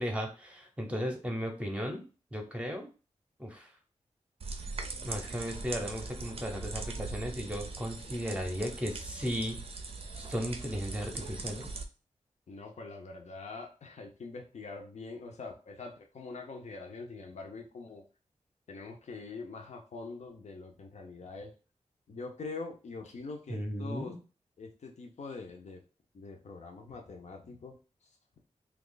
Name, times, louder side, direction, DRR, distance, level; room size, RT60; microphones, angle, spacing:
voice 1, 0.0-2.0 2.3-2.9 3.4-3.7 5.0-9.6 10.1-11.8 23.5-24.2, equal, 10° right, 1 dB, 0.7 m, -35 dB
sound 1, 4.4-11.8, right 3 dB, 50° right, 0.5 m, -41 dB
voice 2, 12.5-18.0 18.7-21.5 22.1-24.2 24.6-25.8 26.1-27.8 28.0-28.1, left 3 dB, 65° left, 2 dB, 0.6 m, -44 dB
2.9 x 2.4 x 3.8 m, 0.34 s
wide cardioid pair, 135°, 13 cm